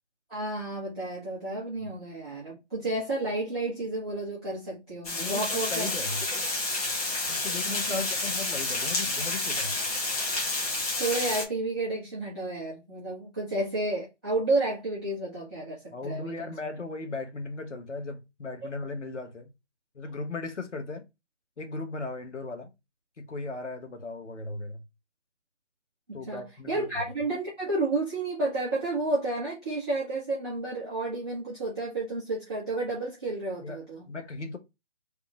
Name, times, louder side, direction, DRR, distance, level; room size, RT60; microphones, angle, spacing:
voice 1, 0.3-5.9 7.7-8.0 10.9-16.5 26.3-34.0, right 2 dB, 5° left, 0.6 m, -31 dB
Water, 5.0-11.4, left 2 dB, 30° left, 1.2 m, -30 dB
voice 2, 5.2-6.2 7.3-9.8 15.9-19.5 19.9-21.0 21.6-22.7 23.2-24.8 26.1-26.9 33.6-33.8 34.1-34.6, left 3 dB, 75° left, 1.2 m, -37 dB
3.6 x 2.3 x 4.5 m
figure-of-eight pair, 155°, 36 cm